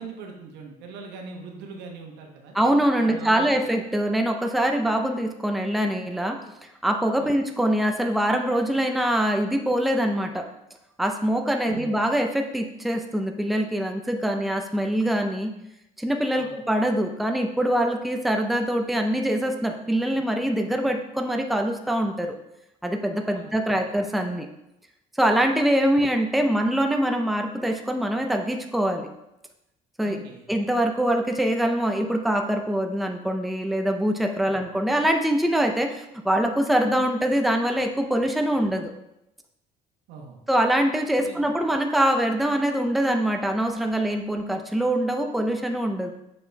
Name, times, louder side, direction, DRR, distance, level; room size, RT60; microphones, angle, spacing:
voice 1, 0.0-2.6 3.0-3.7 7.2-7.3 11.7-11.9 16.4-16.6 23.3-23.8 26.0-26.1 30.0-30.4 34.5-34.6 40.1-40.4 41.2-41.5, right 5 dB, 90° right, 2 dB, 1.2 m, -41 dB
voice 2, 2.5-6.5 6.8-10.5 11.0-15.5 16.0-22.3 22.8-24.5 25.2-29.1 30.0-30.2 30.5-38.9 40.5-46.1, right 1 dB, ahead, 4 dB, 0.5 m, -24 dB
6.7 x 4.3 x 3.4 m, 0.86 s
cardioid pair, 110°, 17 cm